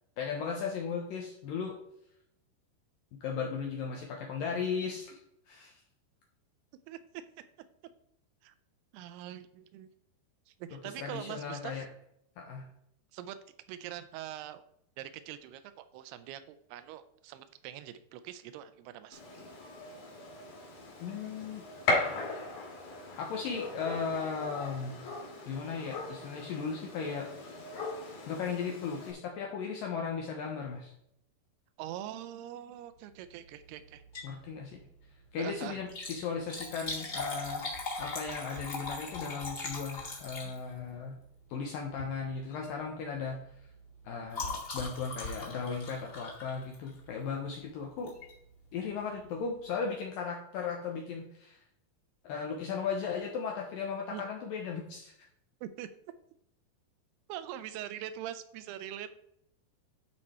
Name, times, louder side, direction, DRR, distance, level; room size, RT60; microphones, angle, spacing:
voice 1, 0.2-1.8 3.2-5.2 5.5-5.8 11.0-11.9 12.4-12.7 21.0-21.6 23.2-25.0 25.5-27.3 28.3-30.9 34.2-34.8 35.3-37.7 38.0-41.2 41.5-43.4 44.0-48.1 48.7-51.6 52.2-55.1, left 5 dB, 75° left, 0 dB, 2.1 m, -36 dB
voice 2, 6.9-7.2 8.4-8.5 8.9-9.9 10.5-11.9 13.1-13.4 13.7-14.6 15.0-19.4 31.8-34.0 35.4-35.8 54.1-54.2 55.6-55.9 57.3-59.1, right 11 dB, 80° right, 12 dB, 2.4 m, -43 dB
Gunshot gunfire, 19.1-29.1, left 2 dB, 60° left, 3.5 m, -38 dB
Liquid, 34.0-34.4 34.7-34.8 35.8-40.9 41.9-42.2 42.5-42.7 43.0-47.1 48.1-48.3 48.9-49.0 49.1-49.2, left 3 dB, 35° left, 1.9 m, -40 dB
12.0 x 4.8 x 4.3 m, 0.73 s
omnidirectional pair, 5.1 m